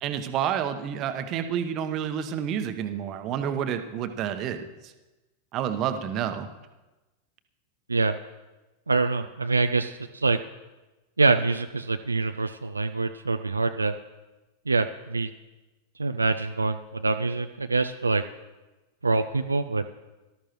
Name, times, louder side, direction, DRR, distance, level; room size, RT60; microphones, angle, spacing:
voice 1, 0.0-4.9 5.5-6.5, right 9 dB, 35° right, 8 dB, 1.0 m, -29 dB
voice 2, 8.9-10.4 11.2-13.9 14.7-15.3 16.0-18.2 19.0-19.8, right 3 dB, 80° right, 8 dB, 0.4 m, -25 dB
18.5 x 12.5 x 3.1 m, 1.1 s
figure-of-eight pair, 90°, 0 cm